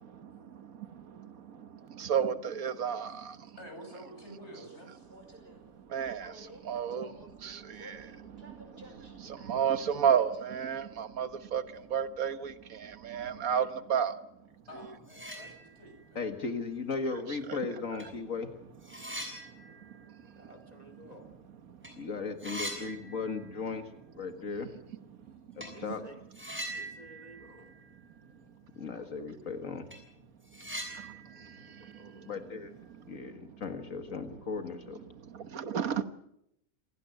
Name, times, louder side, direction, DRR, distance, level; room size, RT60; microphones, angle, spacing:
voice 1, 0.0-3.6 5.4-14.2 17.1-17.6 18.9-20.4 21.7-22.1 25.3-25.7 26.7-26.8 30.6-32.3 32.9-33.6 35.1-36.0, right 8 dB, 80° right, 1.7 m, -34 dB
voice 2, 3.6-5.2 7.7-7.8 14.7-16.3 25.3-25.4, equal, 50° left, 7.7 m, -49 dB
Train, 5.0-13.7, equal, 45° right, 5.6 m, -55 dB
sound 1, 14.7-14.8 15.0-16.1 16.5-16.6 17.5-17.6 18.0-21.5 21.7-21.9 22.2-23.8 24.0-24.1 25.6-25.8 26.3-28.5 28.7-28.8 29.3-29.4 29.7-32.9, right 1 dB, 10° right, 6.0 m, -44 dB
voice 3, 16.2-18.5 22.0-23.8 24.1-24.7 25.6-26.0 28.8-29.9 32.3-32.7 33.1-35.0, left 4 dB, 70° left, 2.1 m, -36 dB
voice 4, 20.4-21.3 25.7-26.3 26.7-27.8 31.8-32.3, right 1 dB, 30° right, 2.7 m, -53 dB
27.0 x 17.0 x 8.0 m
omnidirectional pair, 1.5 m